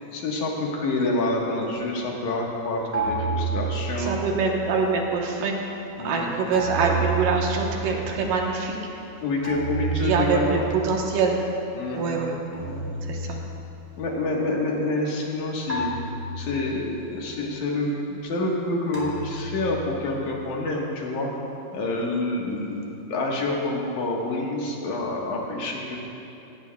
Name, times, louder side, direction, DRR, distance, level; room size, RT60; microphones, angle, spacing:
voice 1, 0.1-4.1 6.0-6.3 9.2-10.7 11.7-12.2 12.6-12.9 14.0-15.9 16.4-21.3 21.7-26.0, left 2 dB, 60° left, -2 dB, 2.5 m, -27 dB
sound 1, 2.9-4.7 6.5-8.3 9.4-11.2 12.5-14.0 15.7-17.0 18.9-20.2, right 4 dB, 10° right, 2.2 m, -31 dB
voice 2, 4.1-5.8 6.0-8.8 10.0-11.4 11.9-12.4 13.1-13.4, right 4 dB, 65° right, 0 dB, 2.6 m, -24 dB
17.5 x 17.0 x 2.3 m, 3.0 s
omnidirectional pair, 4.5 m